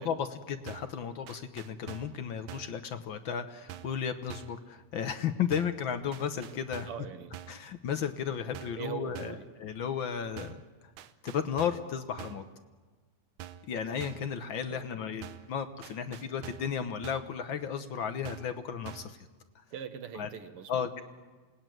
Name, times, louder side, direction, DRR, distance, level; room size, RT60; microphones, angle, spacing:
voice 1, 0.0-6.9 7.5-10.6 11.2-12.5 13.6-19.2 20.1-20.3 20.7-21.0, left 7 dB, 60° left, 9 dB, 1.3 m, -34 dB
sound 1, 0.7-1.0 1.3-2.2 2.5-2.8 3.7-4.0 4.3-4.6 5.5-5.8 6.1-7.1 7.3-7.7 8.5-8.9 9.2-9.5 10.4-10.7 11.0-11.9 12.2-12.5 13.4-13.7 14.0-14.3 15.2-15.5 15.8-16.8 17.0-17.4 18.2-18.6 18.9-19.2, right 11 dB, 85° right, 2.4 m, -46 dB
voice 2, 6.9-7.4 8.8-9.5 14.7-14.9 19.7-21.0, right 9 dB, 55° right, 9 dB, 1.9 m, -42 dB
28.5 x 19.5 x 9.2 m, 1.4 s
omnidirectional pair, 3.4 m